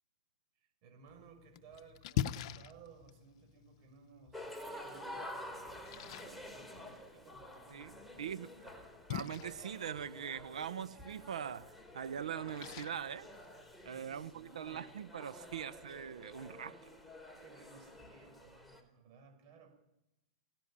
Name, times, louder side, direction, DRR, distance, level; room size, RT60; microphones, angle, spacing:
voice 1, 0.5-4.5 4.8-8.4 13.9-14.9 15.4-15.6 17.3-19.7, right 5 dB, 45° right, 6.6 m, -59 dB
Splash splatter, 1.1-14.1, left 11 dB, 55° left, 1.1 m, -45 dB
sound 1, 4.3-18.8, left 1 dB, ahead, 4.1 m, -50 dB
voice 2, 8.2-8.5 9.1-13.3 13.8-16.9, right 8 dB, 90° right, 1.0 m, -42 dB
24.0 x 18.0 x 8.9 m
hypercardioid pair, 130°, 4 cm